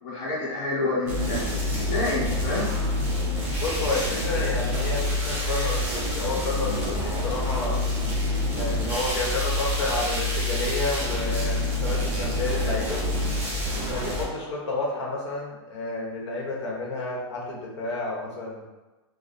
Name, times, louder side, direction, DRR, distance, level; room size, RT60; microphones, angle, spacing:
voice 1, 0.0-2.7, left 2 dB, 30° left, -7 dB, 1.0 m, -28 dB
sound 1, 1.1-14.2, left 1 dB, 15° right, 0.6 m, -27 dB
voice 2, 3.6-7.8 8.5-13.0 13.7-18.6, left 2 dB, 75° left, -2 dB, 1.2 m, -30 dB
3.2 x 2.2 x 4.1 m, 1.1 s
supercardioid pair, 170°, 15 cm